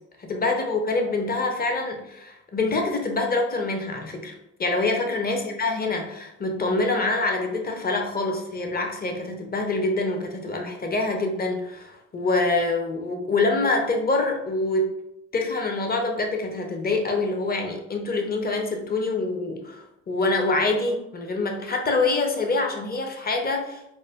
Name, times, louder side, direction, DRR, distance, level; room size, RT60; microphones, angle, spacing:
voice 1, 0.2-4.3 4.6-14.9 15.3-23.8, left 3 dB, 30° left, 3 dB, 0.8 m, -25 dB
4.0 x 2.2 x 3.4 m, 0.83 s
supercardioid pair, 80°, 32 cm